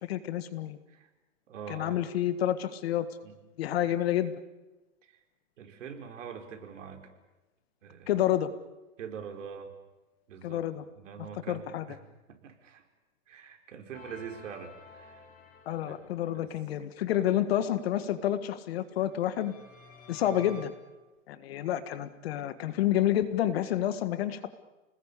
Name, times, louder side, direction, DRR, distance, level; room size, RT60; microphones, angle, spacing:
voice 1, 0.0-0.8 1.7-3.1 3.6-4.3 8.1-8.5 10.4-10.8 11.5-11.8 15.6-19.5 20.1-20.7 21.3-24.5, left 12 dB, 45° left, 12 dB, 1.7 m, -29 dB
voice 2, 1.5-2.0 3.2-3.4 3.8-3.9 5.0-5.2 5.6-7.1 7.8-8.3 9.0-9.7 10.3-10.6 10.9-12.0 12.3-12.8 13.3-15.3 15.8-16.5 17.2-17.3, right 7 dB, 65° right, 4 dB, 4.7 m, -44 dB
sound 1, 13.9-16.6 18.9-20.7, left 2 dB, 20° left, 3.5 m, -52 dB
29.5 x 20.0 x 8.5 m, 1.1 s
hypercardioid pair, 160°, 41 cm